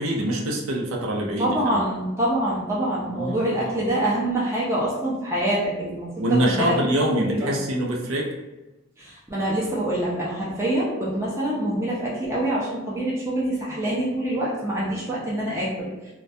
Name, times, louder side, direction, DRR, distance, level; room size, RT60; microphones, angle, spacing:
voice 1, 0.0-1.8 3.1-3.8 6.2-8.3, right 1 dB, 85° right, -1 dB, 0.5 m, -25 dB
voice 2, 1.4-6.1 6.4-7.5 9.0-15.9, right 1 dB, 15° right, -7 dB, 0.4 m, -25 dB
2.2 x 2.2 x 2.6 m, 1.1 s
head